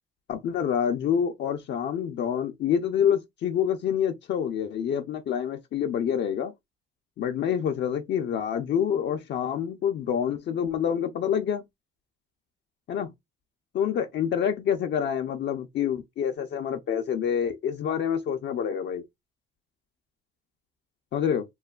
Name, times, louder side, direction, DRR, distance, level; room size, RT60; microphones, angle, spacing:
voice 1, 0.3-6.5 7.2-11.6 12.9-13.1 13.7-19.0 21.1-21.4, left 8 dB, 60° left, 0.5 m, -27 dB
3.1 x 2.1 x 2.3 m
cardioid pair, 90°, 20 cm